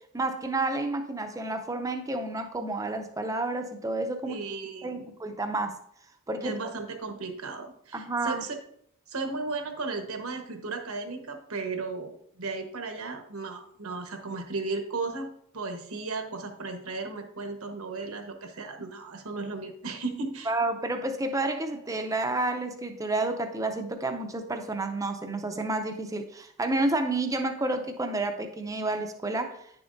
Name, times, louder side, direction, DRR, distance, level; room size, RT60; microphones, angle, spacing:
voice 1, 0.1-4.4 4.8-5.8 6.3-6.6 7.9-8.4 20.5-29.7, right 2 dB, 15° right, 7 dB, 0.5 m, -30 dB
voice 2, 4.3-5.1 6.4-8.6 9.1-20.5, right 3 dB, 75° right, 5 dB, 1.1 m, -35 dB
9.7 x 7.0 x 2.6 m, 0.68 s
head